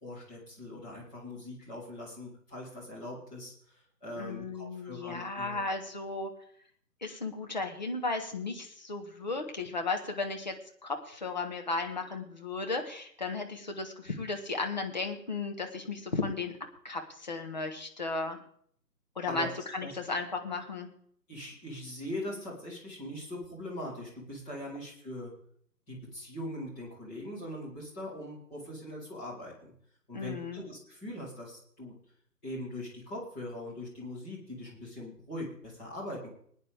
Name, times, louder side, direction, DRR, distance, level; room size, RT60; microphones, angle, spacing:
voice 1, 0.0-5.6 19.3-19.5 19.8-20.0 21.3-25.3 25.9-29.7 30.1-31.9 32.4-36.3, left 1 dB, 5° left, -7 dB, 2.0 m, -41 dB
voice 2, 4.1-6.3 7.0-10.6 10.8-16.5 16.8-18.4 19.1-20.9 30.1-30.6, left 3 dB, 25° left, 4 dB, 1.3 m, -35 dB
20.5 x 9.8 x 3.5 m, 0.62 s
figure-of-eight pair, 160°, 50 cm